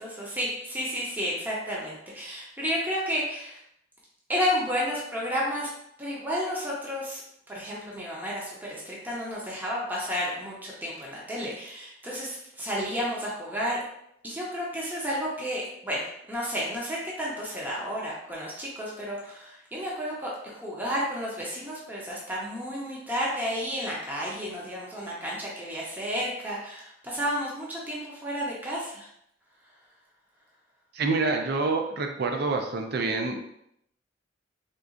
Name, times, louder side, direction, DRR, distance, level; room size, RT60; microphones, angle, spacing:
voice 1, 0.0-3.6 4.3-5.7 6.0-7.2 7.5-13.8 14.2-29.1, equal, 10° right, -5 dB, 0.6 m, -32 dB
voice 2, 30.9-33.4, right 3 dB, 55° right, 4 dB, 0.4 m, -27 dB
3.7 x 2.3 x 2.4 m, 0.74 s
head